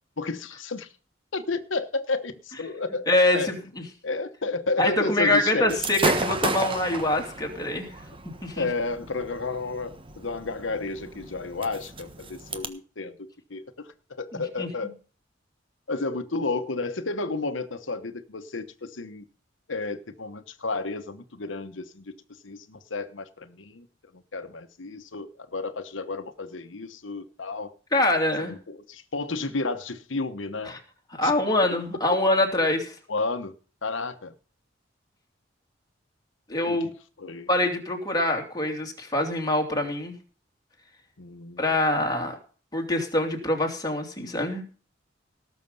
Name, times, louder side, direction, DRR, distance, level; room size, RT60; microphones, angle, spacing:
voice 1, 0.2-0.9 1.3-3.5 4.0-5.8 8.6-14.9 15.9-19.2 19.7-23.9 24.3-27.7 28.4-30.7 31.2-31.3 32.1-32.2 33.1-33.5 33.8-34.3 36.7-36.9 37.2-37.5 41.2-41.7, left 3 dB, 85° left, 1.1 m, -32 dB
voice 2, 3.1-3.5 4.8-7.9 8.4-8.7 14.3-14.7 27.9-28.5 30.7-30.8 31.2-32.9 36.5-36.9 37.5-40.1 41.6-42.4 42.7-44.6, left 1 dB, 20° left, 2.8 m, -24 dB
Gunshot gunfire / Fireworks, 5.7-12.7, right 3 dB, 30° right, 1.3 m, -32 dB
18.5 x 6.7 x 5.4 m
head